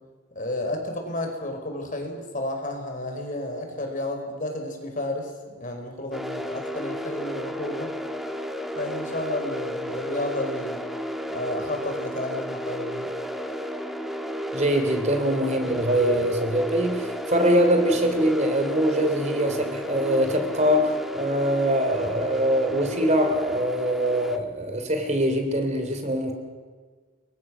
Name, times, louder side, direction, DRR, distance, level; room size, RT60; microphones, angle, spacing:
voice 1, 0.3-7.9 8.8-10.8 11.3-13.1, left 1 dB, 40° left, 4 dB, 4.8 m, -32 dB
sound 1, 6.1-24.4, equal, ahead, 1.6 m, -33 dB
voice 2, 14.5-26.3, equal, 35° right, 6 dB, 3.2 m, -23 dB
29.0 x 23.0 x 6.3 m, 1.5 s
head